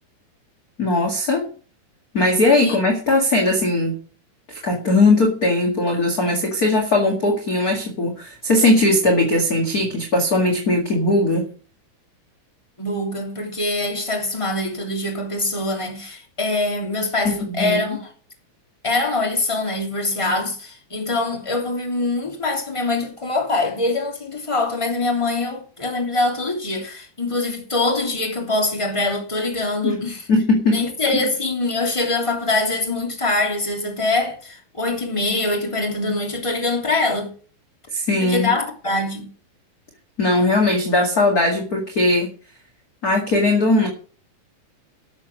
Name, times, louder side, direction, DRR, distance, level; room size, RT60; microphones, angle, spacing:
voice 1, 0.8-1.5 2.1-4.0 4.5-11.5 17.2-17.8 29.8-30.0 30.3-30.8 31.1-31.2 37.9-38.5 40.2-42.3 43.0-43.9, left 2 dB, 30° left, 2.0 m, -19 dB
voice 2, 12.8-18.0 18.8-30.2 30.7-37.3 38.2-39.3, left 2 dB, 10° left, 2.7 m, -23 dB
12.5 x 7.3 x 6.3 m
omnidirectional pair, 4.1 m